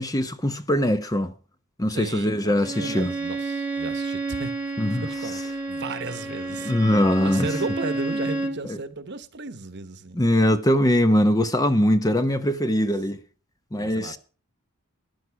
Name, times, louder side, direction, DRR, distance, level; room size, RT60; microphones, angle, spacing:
voice 1, 0.0-1.3 1.8-3.1 4.8-5.0 6.6-7.5 8.7-8.8 10.1-13.2 13.7-14.2, left 1 dB, 15° left, 0.8 m, -21 dB
voice 2, 1.9-4.5 4.9-6.7 7.0-10.2 13.7-14.2, right 3 dB, 55° right, 1.1 m, -35 dB
Bowed string instrument, 2.6-8.6, right 3 dB, 5° right, 1.5 m, -30 dB
14.5 x 11.0 x 4.7 m
head